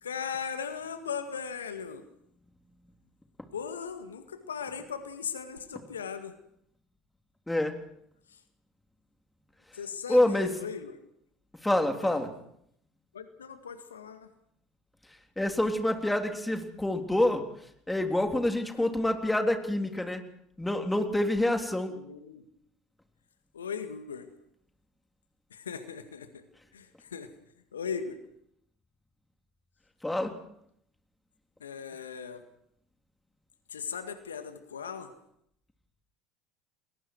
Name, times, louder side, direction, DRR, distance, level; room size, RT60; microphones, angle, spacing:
voice 1, 0.0-2.0 3.5-6.3 9.7-11.0 12.0-12.2 13.1-14.3 18.8-18.9 21.9-22.4 23.5-24.3 25.5-26.3 26.7-27.3 27.7-28.2 31.6-32.4 33.7-35.1, left 6 dB, 80° left, 8 dB, 1.9 m, -38 dB
voice 2, 10.1-10.5 11.6-12.3 15.4-17.4 17.9-20.2 20.6-21.9 30.0-30.4, left 1 dB, 10° left, 4 dB, 3.5 m, -27 dB
30.0 x 21.5 x 4.7 m, 0.71 s
figure-of-eight pair, 65°, 0 cm